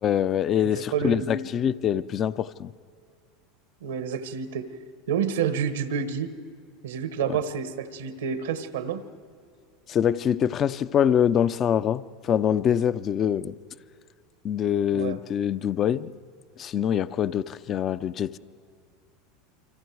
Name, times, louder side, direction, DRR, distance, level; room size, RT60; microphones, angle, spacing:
voice 1, 0.0-2.7 7.2-7.4 9.9-13.6 14.4-16.1 16.6-18.4, left 9 dB, 40° left, 0.6 m, -24 dB
voice 2, 0.7-1.5 3.8-4.7 5.1-6.3 6.8-9.0 14.9-15.2, right 7 dB, 85° right, 1.3 m, -29 dB
29.0 x 25.0 x 4.8 m
hypercardioid pair, 100°, 0 cm